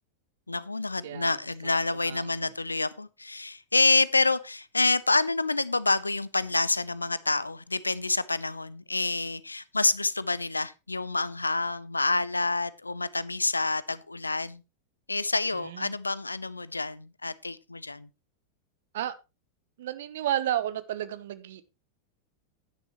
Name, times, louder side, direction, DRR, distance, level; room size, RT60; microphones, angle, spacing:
voice 1, 0.5-14.6 15.1-18.1, left 3 dB, 80° left, 0.6 m, -28 dB
voice 2, 1.0-1.4 2.0-2.2 15.6-15.9 18.9-19.1 19.8-21.6, right 11 dB, 55° right, 1.1 m, -32 dB
11.5 x 10.0 x 3.2 m
figure-of-eight pair, 90°, 0 cm